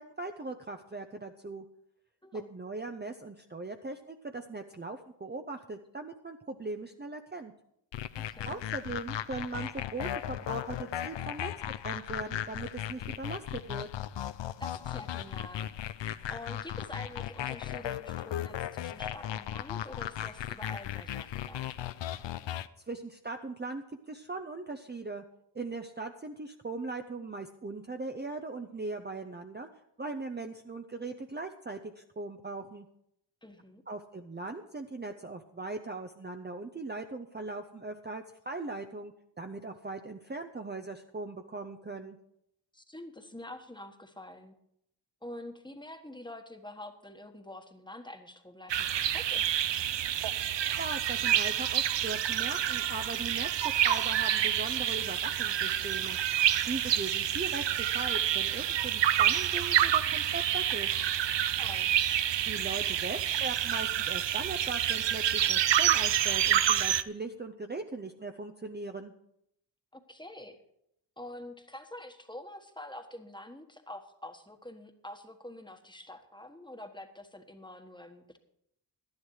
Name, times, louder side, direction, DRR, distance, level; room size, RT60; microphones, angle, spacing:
voice 1, 0.0-1.6 2.3-7.5 8.4-11.5 11.8-13.9 22.9-25.2 25.5-29.7 30.0-32.9 33.9-42.2 50.8-53.5 53.8-56.2 56.6-60.9 62.5-69.1, right 3 dB, 25° right, 5 dB, 0.7 m, -39 dB
sound 1, 7.9-22.7, left 11 dB, 80° left, 0.6 m, -37 dB
voice 2, 8.1-8.6 14.6-15.7 16.3-21.7 33.4-33.8 42.7-44.5 45.2-49.6 61.6-61.9 69.9-70.6 71.2-78.4, left 1 dB, 10° left, 6 dB, 1.4 m, -46 dB
sound 2, 48.7-67.0, right 10 dB, 75° right, 0.6 m, -28 dB
11.5 x 10.5 x 4.8 m, 0.75 s
cardioid pair, 55°, 44 cm